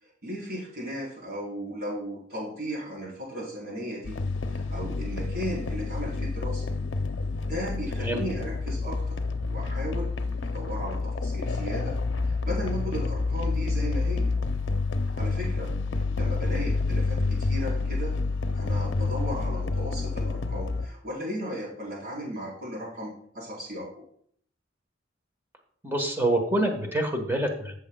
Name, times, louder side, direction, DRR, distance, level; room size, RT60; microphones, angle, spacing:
voice 1, 0.0-4.2 4.5-6.7 7.5-9.2 9.5-10.1 10.4-12.0 12.3-14.3 15.2-18.1 18.5-24.1, equal, 55° right, -4 dB, 4.0 m, -36 dB
sound 1, 4.0-20.9, left 3 dB, 70° left, 0.6 m, -28 dB
voice 2, 25.8-27.7, right 1 dB, 10° right, 3 dB, 1.2 m, -26 dB
14.0 x 6.4 x 2.3 m, 0.63 s
head